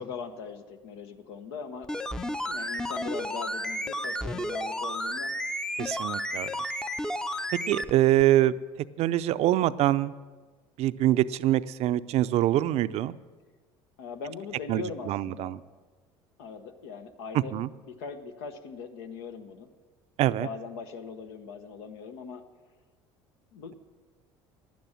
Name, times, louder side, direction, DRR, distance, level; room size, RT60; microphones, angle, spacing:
voice 1, 0.0-1.9 2.4-5.3 14.0-15.5 16.4-17.6 17.9-19.7 20.4-22.4 23.5-23.7, left 5 dB, 85° left, 8 dB, 1.0 m, -40 dB
sound 1, 1.8-7.9 8.2-8.3, equal, 5° left, 0.6 m, -32 dB
voice 2, 5.8-6.5 7.7-8.6 9.0-10.1 10.8-13.1 14.7-15.6 17.3-17.7 20.2-20.5, right 14 dB, 60° right, 15 dB, 0.5 m, -24 dB
11.5 x 9.3 x 7.4 m, 1.3 s
supercardioid pair, 85°, 12 cm